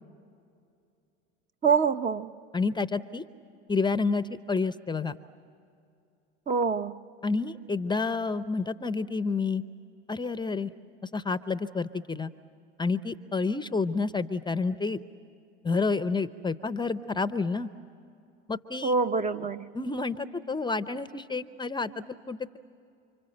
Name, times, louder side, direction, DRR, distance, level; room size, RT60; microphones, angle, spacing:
voice 1, 1.6-2.3 6.5-7.0 18.8-19.7, right 5 dB, 20° right, 9 dB, 0.8 m, -25 dB
voice 2, 2.5-3.2 3.7-5.2 7.2-9.6 10.1-10.7 11.1-12.3 12.8-15.0 15.6-17.7 18.5-18.9 19.7-22.6, left 4 dB, 15° left, 13 dB, 0.7 m, -29 dB
30.0 x 25.0 x 7.9 m, 2.5 s
hypercardioid pair, 85°, 33 cm